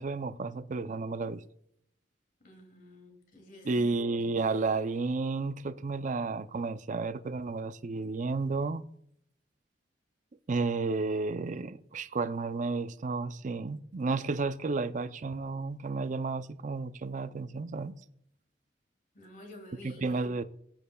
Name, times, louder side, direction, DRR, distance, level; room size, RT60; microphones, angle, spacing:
voice 1, 0.0-1.4 3.6-8.8 10.5-18.0 19.8-20.4, right 3 dB, 45° right, 0.5 m, -32 dB
voice 2, 2.4-4.4 19.1-20.2, left 1 dB, 50° left, 2.6 m, -51 dB
19.0 x 9.0 x 2.3 m
head